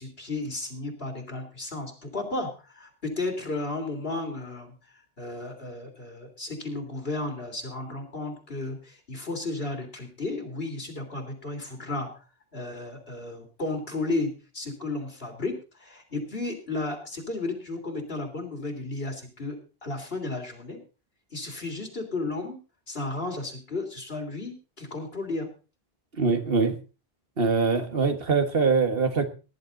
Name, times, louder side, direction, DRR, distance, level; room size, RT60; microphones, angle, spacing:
voice 1, 0.0-12.2 12.5-20.8 21.3-22.6 22.9-25.5, left 2 dB, 65° left, 3 dB, 3.5 m, -33 dB
voice 2, 26.2-26.8 27.4-29.3, right 4 dB, 65° right, 8 dB, 1.8 m, -23 dB
18.5 x 11.0 x 4.0 m, 0.33 s
omnidirectional pair, 1.1 m